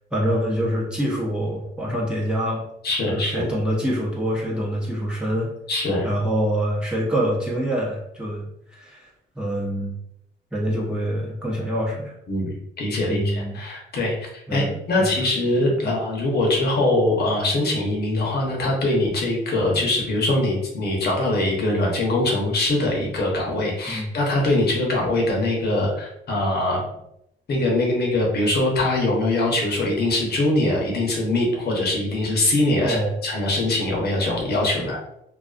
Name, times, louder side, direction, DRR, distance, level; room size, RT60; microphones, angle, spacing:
voice 1, 0.1-2.6 3.0-5.5 6.0-8.5 8.7-9.1 9.4-9.9 10.5-12.1 13.1-13.6 14.5-15.2 15.8-16.0 23.9-24.1 32.8-33.2, equal, 5° right, -5 dB, 0.7 m, -25 dB
voice 2, 2.8-3.5 5.7-6.1 12.3-26.8 27.5-35.0, left 2 dB, 55° left, -2 dB, 0.8 m, -22 dB
2.4 x 2.4 x 2.4 m, 0.79 s
cardioid pair, 90°, 20 cm